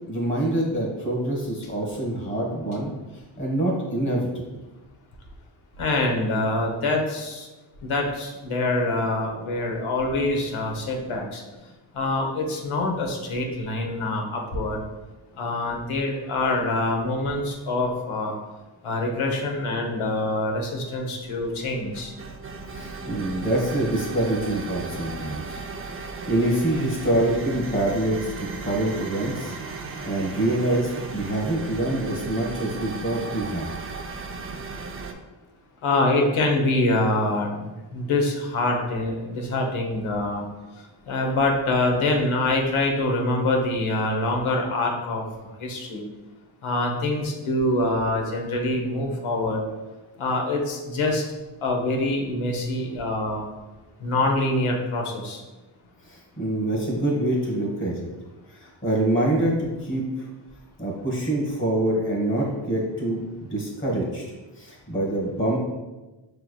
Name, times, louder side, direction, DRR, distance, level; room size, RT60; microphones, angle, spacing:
voice 1, 0.1-4.3 22.7-25.6 26.0-33.7 56.0-58.1 58.5-60.3 60.8-64.2 64.6-65.6, right 1 dB, 25° left, -1 dB, 1.3 m, -26 dB
voice 2, 5.8-7.5 7.8-11.4 11.9-14.8 15.4-18.4 18.8-22.1 35.8-40.4 41.1-45.3 45.6-46.0 46.6-49.6 50.2-51.2 51.6-53.4 54.0-55.4, left 2 dB, 85° left, 1 dB, 1.0 m, -25 dB
sound 1, 21.2-35.1, right 4 dB, 30° right, 0.4 m, -36 dB
5.8 x 3.3 x 2.2 m, 1.1 s
wide cardioid pair, 100°, 48 cm